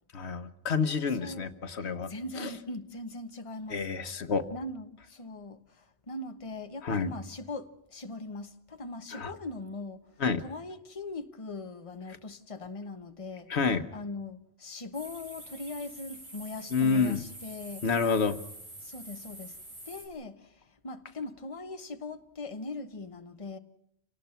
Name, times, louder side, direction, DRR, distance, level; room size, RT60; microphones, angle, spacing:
voice 1, 0.1-2.1 2.4-2.5 3.7-4.4 6.8-7.1 9.1-9.3 10.2-10.4 13.5-13.8 16.7-17.2 17.8-18.4, left 5 dB, 85° left, 1.5 m, -28 dB
voice 2, 1.2-1.5 1.8-3.9 4.5-13.6 13.9-17.9 18.8-19.6 19.9-23.6, left 2 dB, 30° left, 1.3 m, -40 dB
sound 1, 14.9-20.1, right 1 dB, 80° right, 5.8 m, -46 dB
28.5 x 18.5 x 5.8 m
omnidirectional pair, 1.1 m